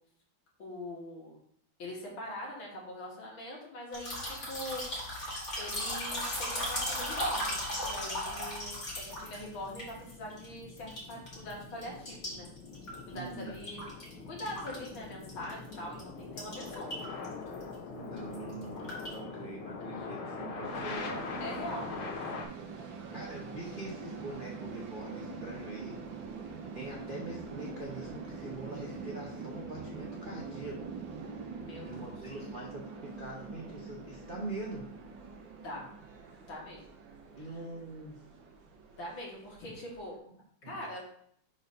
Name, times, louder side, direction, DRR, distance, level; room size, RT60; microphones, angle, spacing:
voice 1, 0.6-1.4 1.8-4.8 5.6-12.5 13.1-13.8 14.2-16.9 21.4-21.9 31.6-32.1 35.6-35.9 36.4-36.8 37.4-37.5 38.9-40.2 40.7-41.1, left 1 dB, 65° left, -3 dB, 2.5 m, -42 dB
sound 1, 3.9-10.5 10.8-11.5 11.8-14.1 14.4-15.7 16.0-16.1 16.4-17.3 17.5-17.7 18.2-19.1, left 1 dB, 35° left, 2.3 m, -36 dB
sound 2, 6.5-22.5, left 4 dB, 90° left, 1.9 m, -43 dB
voice 2, 13.1-13.6 17.9-21.3 22.8-22.9 23.1-26.0 26.7-30.9 31.8-34.9 37.4-38.2 40.6-40.8, right 2 dB, 40° right, -3 dB, 0.7 m, -43 dB
sound 3, 20.6-40.2, right 4 dB, 65° right, 1.6 m, -44 dB
5.6 x 4.1 x 5.3 m, 0.67 s
omnidirectional pair, 2.4 m